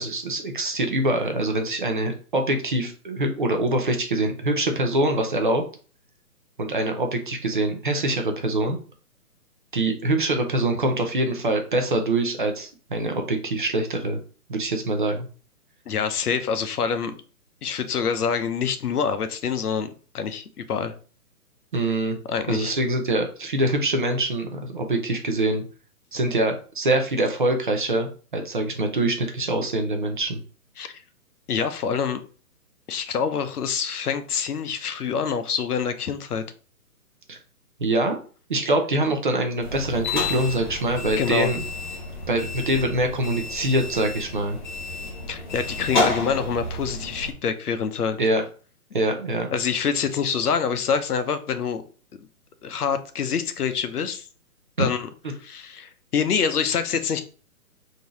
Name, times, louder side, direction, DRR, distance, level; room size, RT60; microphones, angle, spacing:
voice 1, 0.0-5.6 6.6-8.8 9.7-14.2 14.5-15.3 21.7-22.2 22.5-25.6 26.1-30.4 37.3-37.4 37.8-38.2 38.5-41.7 42.3-44.6 48.2-48.4 48.9-49.5 54.8-54.9, right 1 dB, 35° right, 0.6 m, -24 dB
voice 2, 15.9-17.2 17.6-19.9 20.1-20.9 22.3-22.7 30.8-31.0 31.5-32.2 32.9-36.4 41.2-41.5 45.3-48.2 49.5-51.8 52.6-54.3 54.8-55.1 55.4-57.2, left 6 dB, 75° left, 0.9 m, -26 dB
sound 1, 39.6-47.3, left 2 dB, 30° left, 0.8 m, -30 dB
3.9 x 2.7 x 4.7 m
hypercardioid pair, 165°, 46 cm